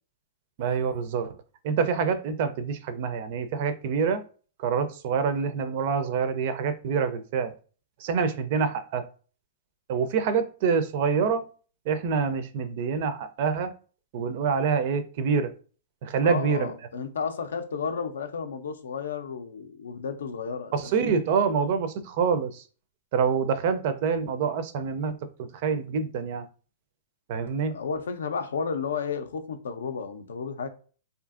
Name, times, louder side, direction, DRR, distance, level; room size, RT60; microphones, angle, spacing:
voice 1, 0.6-1.3 1.6-4.2 4.6-7.5 8.0-9.0 9.9-11.4 11.9-13.7 14.1-15.5 16.0-16.7 20.7-22.6 23.1-26.4 27.3-27.7, right 6 dB, 55° right, 0.4 m, -26 dB
voice 2, 16.2-20.9 27.7-30.7, left 5 dB, 80° left, 0.4 m, -32 dB
2.6 x 2.4 x 2.4 m
hypercardioid pair, 130°, 0 cm